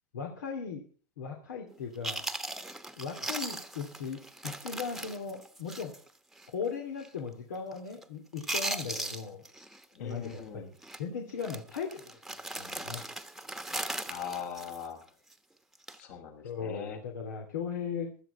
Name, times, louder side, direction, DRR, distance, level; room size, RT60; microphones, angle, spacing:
voice 1, 0.1-0.8 1.2-2.2 3.0-5.9 6.5-9.4 10.0-12.0 12.6-13.0 16.4-18.2, left 6 dB, 85° left, 2 dB, 2.8 m, -38 dB
Chewing mastication, 1.7-1.8 2.0-6.1 6.4-6.5 7.0-7.3 7.6-8.0 8.3-9.8 10.1-10.4 10.8-11.0 11.4-15.3 15.7-16.0, right 2 dB, ahead, 1.2 m, -38 dB
voice 2, 9.9-10.7 14.1-15.1 16.0-17.0, left 8 dB, 65° left, 3 dB, 5.7 m, -41 dB
16.0 x 12.5 x 4.3 m, 0.40 s
hypercardioid pair, 110°, 10 cm